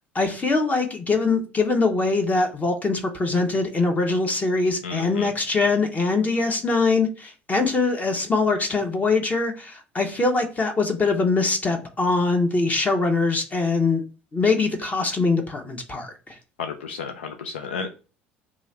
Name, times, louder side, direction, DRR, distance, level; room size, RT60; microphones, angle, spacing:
voice 1, 0.1-14.0 14.3-16.3, left 3 dB, 25° left, 0.9 m, -23 dB
voice 2, 4.8-5.3 16.6-17.9, left 5 dB, 85° left, 0.3 m, -32 dB
3.0 x 2.4 x 4.1 m
hypercardioid pair, 65°, 6 cm